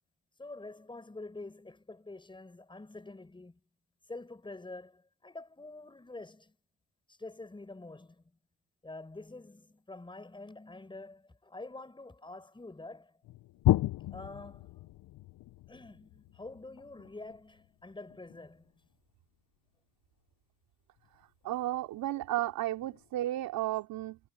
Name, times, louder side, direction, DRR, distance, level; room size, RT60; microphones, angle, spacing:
voice 1, 0.4-3.6 4.1-6.6 7.1-8.3 8.8-13.2 14.1-14.7 15.7-18.7, left 2 dB, 15° left, 5.2 m, -47 dB
sound 1, 13.2-18.9 21.0-21.5 22.0-22.1 22.8-23.1, left 16 dB, 60° left, 0.9 m, -34 dB
voice 2, 21.4-24.2, right 14 dB, 70° right, 3.5 m, -33 dB
cardioid pair, 105°, 36 cm